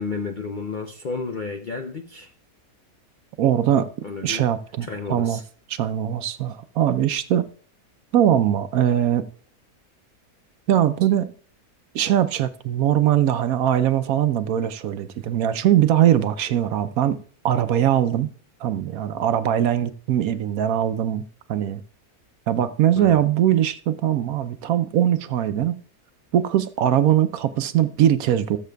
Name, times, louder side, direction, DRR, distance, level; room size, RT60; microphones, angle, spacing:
voice 1, 0.0-2.3 4.0-4.5 4.8-5.4 23.0-23.3, left 4 dB, 55° left, 0.5 m, -32 dB
voice 2, 3.4-3.9 4.2-5.4 5.7-7.4 8.1-9.3 10.7-11.3 11.9-17.2 17.4-18.3 18.6-21.2 21.5-21.8 22.5-25.8 26.3-28.6, right 11 dB, 70° right, 1.0 m, -21 dB
18.0 x 7.4 x 2.3 m
omnidirectional pair, 1.6 m